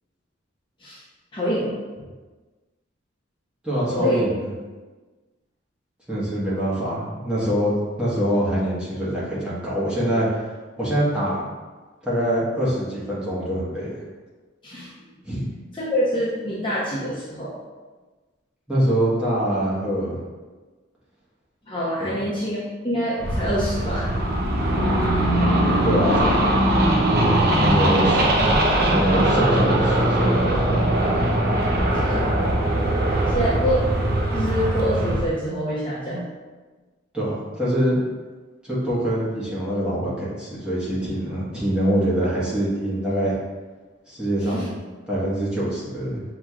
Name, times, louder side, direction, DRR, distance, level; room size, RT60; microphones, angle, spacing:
voice 1, 1.3-1.7 3.9-4.2 6.6-6.7 14.6-14.9 15.7-17.6 21.7-22.6 22.8-24.1 32.0-32.2 33.1-33.8 34.3-36.2 44.5-44.7, equal, 25° left, -8 dB, 0.7 m, -25 dB
voice 2, 3.6-4.5 6.1-10.5 10.8-11.5 12.0-14.0 15.2-15.5 18.7-20.2 22.0-22.2 25.8-26.6 27.2-28.4 28.9-30.9 32.1-32.3 37.1-38.0 38.6-43.4 44.1-44.7 45.1-46.2, right 1 dB, 5° right, -9 dB, 1.1 m, -24 dB
sound 1, 23.2-35.3, right 1 dB, 50° right, 0.5 m, -20 dB
6.0 x 3.0 x 2.4 m, 1.3 s
head